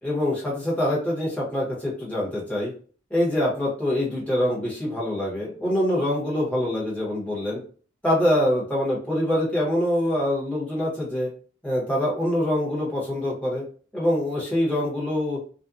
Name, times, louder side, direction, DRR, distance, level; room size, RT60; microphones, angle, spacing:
voice 1, 0.0-2.7 3.1-7.6 8.0-11.3 11.6-13.6 13.9-15.4, left 1 dB, 5° left, -6 dB, 0.9 m, -24 dB
2.6 x 2.2 x 2.4 m, 0.41 s
head